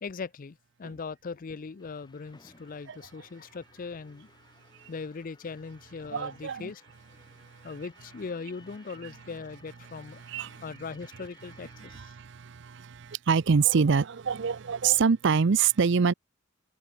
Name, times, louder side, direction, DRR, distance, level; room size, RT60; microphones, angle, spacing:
voice 1, 0.0-4.3 4.9-6.8 7.6-10.2 10.6-12.1, left 4 dB, 45° left, 0.5 m, -40 dB
sound 1, 1.8-12.0, left 2 dB, 20° left, 2.7 m, -59 dB
voice 2, 6.1-6.7 10.3-10.6 11.8-16.1, right 6 dB, 65° right, 0.6 m, -25 dB
head